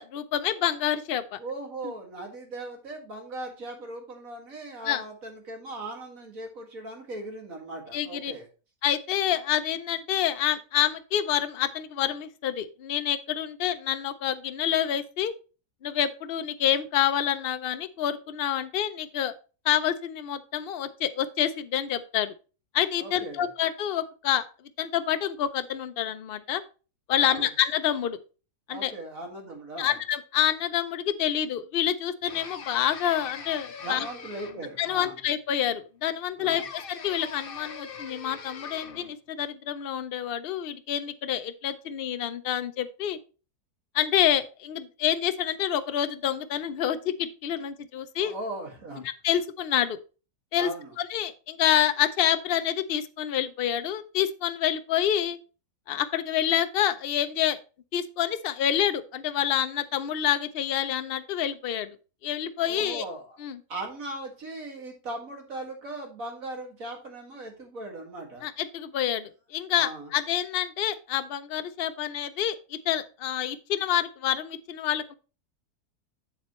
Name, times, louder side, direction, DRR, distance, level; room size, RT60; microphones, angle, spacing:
voice 1, 0.0-1.4 4.8-5.0 7.9-8.3 8.8-15.3 15.8-19.3 19.6-22.3 22.7-24.5 24.8-26.6 27.1-28.2 28.7-28.9 29.8-34.1 34.8-43.2 43.9-48.3 49.2-50.0 50.5-50.7 51.0-55.4 55.9-57.6 57.9-61.9 62.2-63.0 63.4-63.6 68.4-75.1, left 10 dB, 90° left, 11 dB, 0.5 m, -27 dB
voice 2, 1.4-8.5 23.0-23.5 27.2-27.5 28.7-30.0 33.8-35.2 36.4-36.7 48.2-49.0 50.6-50.9 62.7-63.4 63.7-68.5 69.7-70.1, right 2 dB, 55° right, 2 dB, 2.4 m, -38 dB
sound 1, 32.3-34.8 36.5-39.1, left 6 dB, 45° left, 0.7 m, -41 dB
8.0 x 7.3 x 3.1 m, 0.34 s
omnidirectional pair, 1.7 m